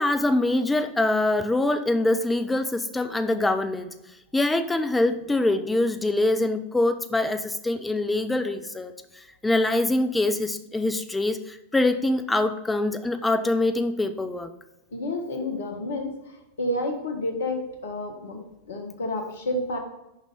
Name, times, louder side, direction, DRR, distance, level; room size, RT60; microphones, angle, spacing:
voice 1, 0.0-3.9 4.3-14.5, left 2 dB, 10° left, 8 dB, 0.6 m, -24 dB
voice 2, 14.9-16.3 16.6-18.4 18.7-19.8, left 1 dB, 60° left, 4 dB, 1.4 m, -30 dB
6.3 x 5.2 x 5.0 m, 0.92 s
figure-of-eight pair, 90°, 0 cm